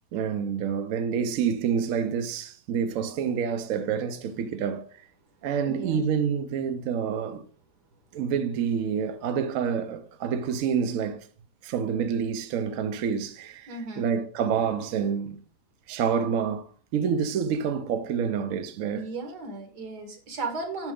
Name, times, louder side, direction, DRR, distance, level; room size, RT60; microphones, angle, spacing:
voice 1, 0.1-5.1 5.4-7.5 8.1-11.3 11.6-15.4 15.9-19.1, right 7 dB, 65° right, 0.9 m, -28 dB
voice 2, 5.6-6.0 13.7-14.1 18.9-20.9, right 3 dB, 85° right, 2.1 m, -35 dB
6.6 x 6.0 x 3.7 m
omnidirectional pair, 1.7 m